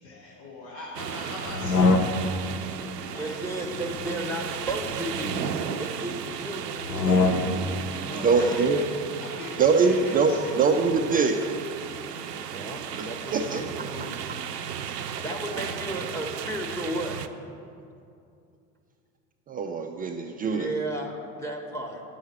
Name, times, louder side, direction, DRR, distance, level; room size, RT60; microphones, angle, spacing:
voice 1, 0.0-2.1 3.1-3.4 8.1-8.9 9.2-10.6, left 2 dB, 55° left, -4 dB, 1.6 m, -40 dB
sound 1, 0.9-17.3, right 8 dB, 80° right, 0.6 m, -35 dB
sound 2, 1.5-2.5 3.8-5.5 6.8-7.8, left 3 dB, 85° left, 0.7 m, -25 dB
voice 2, 3.1-5.5 5.7-7.4 9.4-9.5 11.8-14.1 15.0-17.2 20.5-22.0, right 1 dB, 5° left, 3 dB, 1.3 m, -34 dB
voice 3, 8.1-8.8 9.6-11.3 13.0-13.1 13.3-13.6 19.5-20.7, right 4 dB, 20° right, 4 dB, 0.4 m, -23 dB
8.4 x 6.3 x 8.1 m, 2.5 s
figure-of-eight pair, 70°, 47 cm